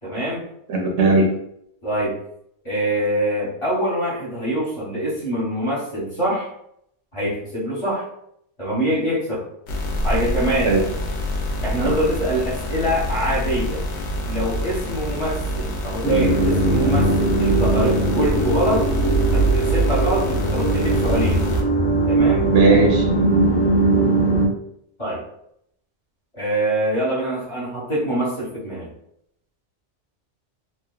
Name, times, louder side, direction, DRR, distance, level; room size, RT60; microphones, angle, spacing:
voice 1, 0.0-0.5 1.8-2.2 2.6-6.5 7.1-8.0 8.6-9.4 10.0-10.8 11.6-13.8 14.3-18.9 19.3-21.5 22.1-22.5 25.0-25.2 26.3-28.9, right 1 dB, 30° left, -8 dB, 1.0 m, -24 dB
voice 2, 0.7-1.3 10.6-10.8 11.8-11.9 22.5-23.2, right 3 dB, 80° right, -1 dB, 1.0 m, -17 dB
sound 1, 9.7-21.6, right 1 dB, 70° left, 0.8 m, -26 dB
sound 2, 16.0-24.5, right 2 dB, 5° left, 0.5 m, -20 dB
2.9 x 2.3 x 2.3 m, 0.73 s
omnidirectional pair, 1.2 m